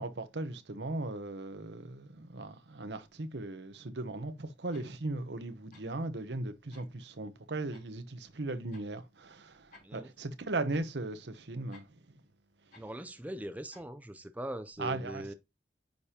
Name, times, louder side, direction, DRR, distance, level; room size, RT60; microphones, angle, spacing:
voice 1, 0.0-12.0 14.8-15.3, right 2 dB, 75° right, 0.9 m, -38 dB
sound 1, 4.7-4.9 5.7-5.9 6.7-6.9 7.7-7.9 8.7-8.9 9.7-9.9 10.7-10.9 11.7-12.0 12.7-12.9 13.7-14.0, left 3 dB, 55° left, 3.4 m, -58 dB
voice 2, 12.7-15.3, right 1 dB, 10° right, 0.5 m, -41 dB
9.3 x 5.1 x 2.8 m
head